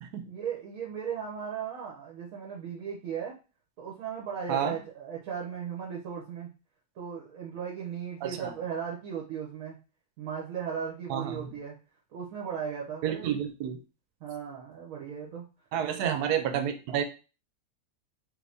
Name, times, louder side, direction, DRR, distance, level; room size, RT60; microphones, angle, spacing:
voice 1, 0.2-3.3 3.8-6.5 7.0-9.8 10.2-11.8 12.1-13.4 14.2-15.4 16.0-16.2, right 7 dB, 65° right, -2 dB, 1.1 m, -37 dB
voice 2, 8.2-8.5 11.1-11.4 13.0-13.8 15.7-17.0, right 9 dB, 85° right, 8 dB, 1.1 m, -30 dB
2.9 x 2.6 x 3.3 m, 0.33 s
omnidirectional pair, 1.6 m